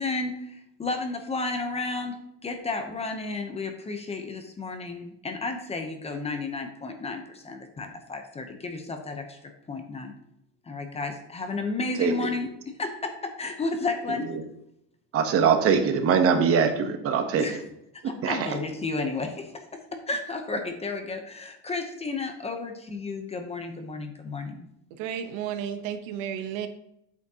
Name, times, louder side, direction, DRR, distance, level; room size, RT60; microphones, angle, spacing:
voice 1, 0.0-2.2 2.4-9.4 9.7-10.1 10.7-12.5 12.8-14.3 17.4-17.6 18.0-19.6 20.1-24.7, left 3 dB, 15° left, 5 dB, 0.7 m, -32 dB
voice 2, 15.1-17.5 18.2-18.6, right 6 dB, 35° right, 7 dB, 1.0 m, -22 dB
voice 3, 24.9-26.7, right 9 dB, 85° right, 8 dB, 1.0 m, -32 dB
8.3 x 7.2 x 2.8 m, 0.78 s
cardioid pair, 150°, 38 cm